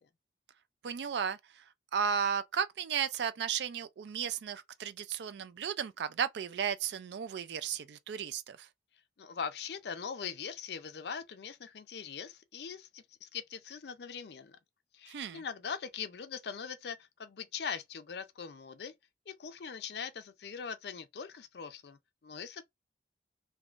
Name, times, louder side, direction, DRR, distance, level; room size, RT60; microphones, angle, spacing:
voice 1, 0.8-1.4 1.9-8.7 15.1-15.4, right 7 dB, 75° right, 0.4 m, -34 dB
voice 2, 9.2-14.6 14.9-18.9 19.3-22.6, left 6 dB, 65° left, 0.5 m, -41 dB
3.5 x 2.6 x 2.4 m
head